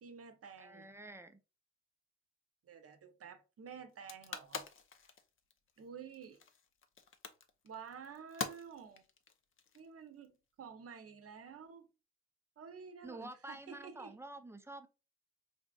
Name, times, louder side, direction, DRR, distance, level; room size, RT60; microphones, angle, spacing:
voice 1, 0.0-0.9 2.6-4.7 5.8-6.4 7.6-9.0 9.7-10.3 10.6-11.9 12.6-14.1, right 6 dB, 50° right, 0.8 m, -51 dB
voice 2, 0.6-1.4 13.0-14.9, right 1 dB, 10° right, 0.5 m, -49 dB
sound 1, 3.9-10.3, left 5 dB, 40° left, 0.6 m, -46 dB
4.1 x 2.4 x 2.3 m
supercardioid pair, 50°, 31 cm